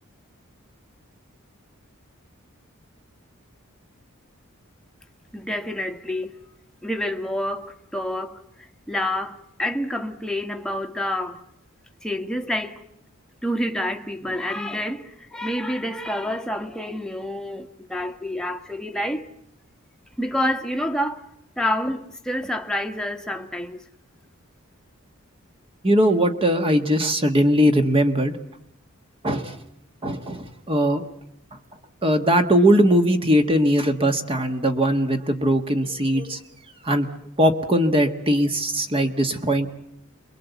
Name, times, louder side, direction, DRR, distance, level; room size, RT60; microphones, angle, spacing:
voice 1, 5.3-6.4 6.8-8.4 8.9-11.4 12.0-12.8 13.4-19.2 20.2-21.2 21.6-23.8, left 1 dB, 5° left, 1.3 m, -28 dB
voice 2, 25.8-28.4 29.2-29.6 30.0-31.0 31.5-31.6 32.0-36.4 36.8-37.1 37.4-39.7, equal, 25° right, 1.4 m, -20 dB
28.5 x 22.0 x 8.2 m
head